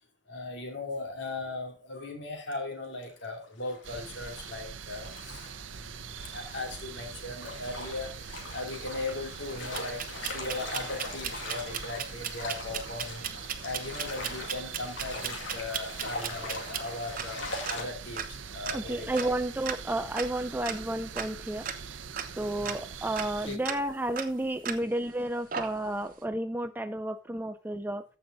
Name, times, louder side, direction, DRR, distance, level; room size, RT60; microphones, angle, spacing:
voice 1, 0.3-8.1 8.5-19.3 22.4-22.7 23.4-23.8, left 2 dB, 65° left, 3 dB, 2.7 m, -38 dB
sound 1, 2.4-2.5 3.0-17.8, left 2 dB, 80° left, 2.1 m, -42 dB
sound 2, 3.8-23.6, right 6 dB, 80° right, 0.7 m, -43 dB
sound 3, 9.7-25.1 25.5-26.1, right 8 dB, 45° right, 0.9 m, -38 dB
voice 2, 18.7-21.7 22.4-28.0, right 1 dB, 10° right, 11 dB, 0.3 m, -32 dB
14.5 x 5.5 x 3.9 m, 0.34 s
head